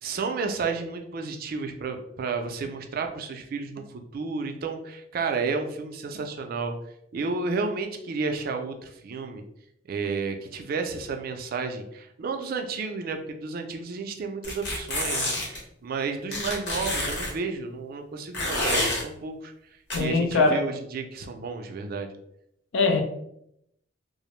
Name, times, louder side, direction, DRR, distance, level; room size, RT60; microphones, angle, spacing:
voice 1, 0.0-3.9 4.1-6.7 7.1-9.4 9.9-19.5 19.9-22.1, right 4 dB, 50° right, 0.3 m, -31 dB
sound 1, 14.4-15.6 16.3-17.3 18.3-19.0 19.9-20.0, left 1 dB, 65° left, 0.9 m, -28 dB
voice 2, 19.9-20.7 22.7-23.0, left 3 dB, 85° left, 0.4 m, -22 dB
2.5 x 2.0 x 2.9 m
head